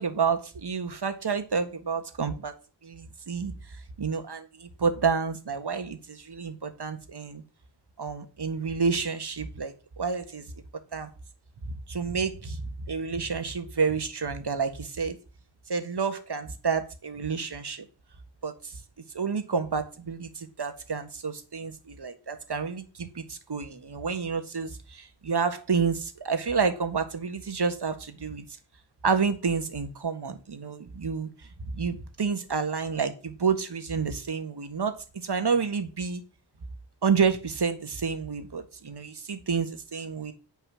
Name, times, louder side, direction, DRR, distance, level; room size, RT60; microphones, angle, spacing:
voice 1, 0.0-2.5 2.8-3.5 4.0-7.4 8.0-10.4 10.9-11.1 11.6-15.2 15.7-17.8 18.4-18.8 19.1-28.4 29.0-31.3 31.6-36.2 37.0-40.3, right 5 dB, 60° right, 1.6 m, -29 dB
9.2 x 5.9 x 6.3 m
wide cardioid pair, 75°, 44 cm